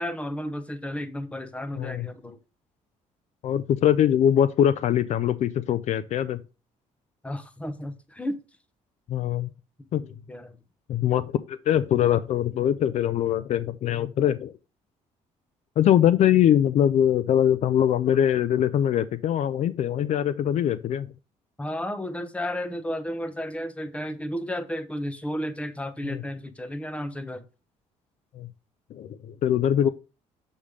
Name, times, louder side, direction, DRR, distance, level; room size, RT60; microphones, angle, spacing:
voice 1, 0.0-2.4 7.2-8.4 9.8-10.6 21.6-27.5 29.8-29.9, equal, 10° left, 0.9 m, -33 dB
voice 2, 1.8-2.1 3.4-6.4 9.1-9.5 9.9-10.0 10.9-14.5 15.8-21.1 26.0-26.2 28.3-28.5 28.9-29.9, left 10 dB, 60° left, 0.5 m, -22 dB
7.1 x 3.2 x 5.1 m
cardioid pair, 90°, 13 cm